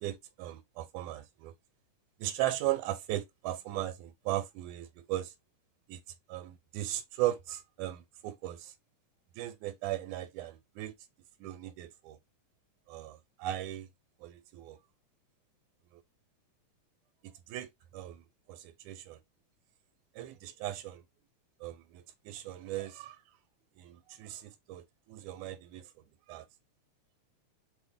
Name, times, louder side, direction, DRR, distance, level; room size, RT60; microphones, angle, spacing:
voice 1, 0.0-1.5 2.2-5.3 5.9-6.0 6.3-8.7 9.4-10.9 11.4-12.2 12.9-13.9 14.2-14.8 17.5-19.2 20.2-21.0 21.6-23.2 23.8-25.9 26.3-26.5, right 14 dB, 90° right, 2.0 m, -37 dB
6.0 x 2.1 x 3.5 m
omnidirectional pair, 3.4 m